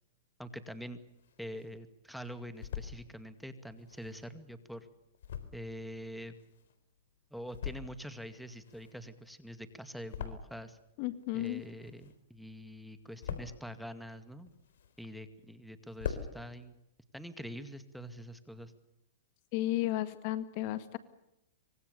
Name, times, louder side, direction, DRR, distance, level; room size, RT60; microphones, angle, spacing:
voice 1, 0.4-1.0 1.4-4.9 5.5-6.4 7.3-10.8 11.3-14.5 15.0-16.8 17.1-18.7, equal, ahead, 10 dB, 2.2 m, -45 dB
sound 1, 0.9-1.8 2.2-3.0 3.7-6.9 7.3-8.1 8.4-10.9 11.1-12.4 12.7-13.7 14.2-15.3 15.6-15.7 15.9-16.3, left 8 dB, 75° left, 4.2 m, -43 dB
voice 2, 11.0-11.6 19.5-21.0, left 15 dB, 50° left, 12 dB, 1.9 m, -33 dB
26.0 x 24.5 x 6.9 m, 0.87 s
hypercardioid pair, 135°, 0 cm